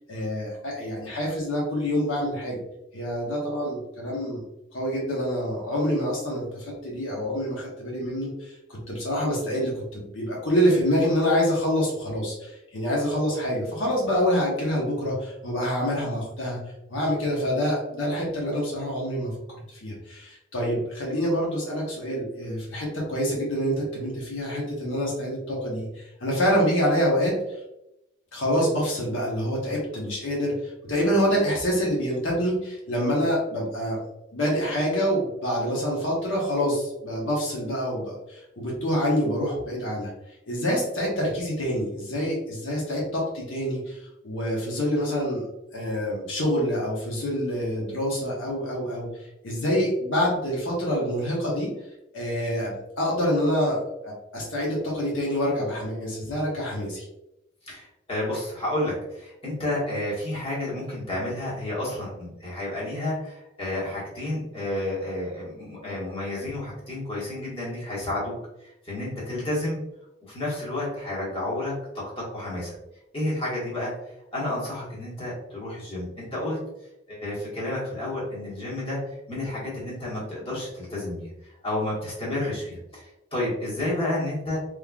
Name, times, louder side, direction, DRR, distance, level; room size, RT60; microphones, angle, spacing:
voice 1, 0.1-2.6 2.9-4.4 4.7-16.6 16.9-27.4 28.3-34.0 34.3-40.1 40.5-45.4 45.7-51.7 52.1-57.1, equal, 80° left, -3 dB, 1.0 m, -26 dB
voice 2, 57.6-69.8 70.3-72.7 73.1-73.9 74.3-76.6 77.1-79.0 79.3-84.6, left 1 dB, 30° left, -7 dB, 1.4 m, -31 dB
3.6 x 3.2 x 2.3 m, 0.89 s
head